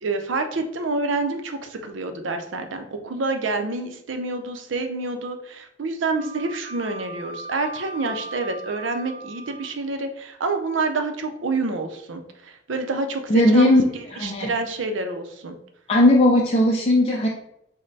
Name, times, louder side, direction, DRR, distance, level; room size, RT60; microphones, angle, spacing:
voice 1, 0.0-13.8 14.2-15.6, right 3 dB, 85° right, 6 dB, 0.6 m, -28 dB
Wind instrument woodwind instrument, 6.1-9.8, right 2 dB, 30° right, 0.8 m, -38 dB
voice 2, 13.3-13.8 14.1-14.5 15.9-17.3, left 1 dB, 30° left, -3 dB, 0.5 m, -17 dB
5.2 x 2.2 x 4.0 m, 0.79 s
head